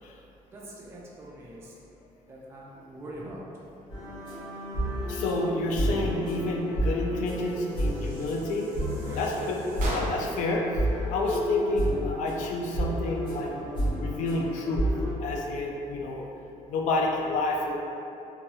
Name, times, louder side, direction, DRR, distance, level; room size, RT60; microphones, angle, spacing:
voice 1, 0.5-1.7 2.3-3.4 9.1-9.4 15.4-15.5, right 1 dB, 20° right, -5 dB, 0.3 m, -43 dB
sound 1, 3.9-15.1, right 1 dB, 35° left, 0.9 m, -31 dB
voice 2, 5.1-8.7 9.2-9.6 9.9-10.6 11.1-13.5 14.0-14.9 15.2-16.3 16.7-17.8, left 2 dB, 70° left, 0 dB, 0.4 m, -29 dB
sound 2, 7.4-10.5, equal, 80° right, 0.8 m, -38 dB
3.0 x 2.3 x 2.8 m, 2.6 s
cardioid pair, 165°, 14 cm